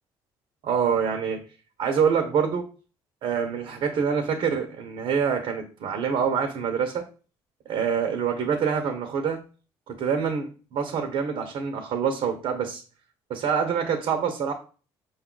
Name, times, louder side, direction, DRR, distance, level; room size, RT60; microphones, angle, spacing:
voice 1, 0.6-1.4 1.8-2.7 3.2-7.0 7.7-9.4 9.9-12.8 13.3-14.5, right 6 dB, 65° right, 5 dB, 0.7 m, -26 dB
5.2 x 2.3 x 3.8 m, 0.37 s
supercardioid pair, 85°, 10 cm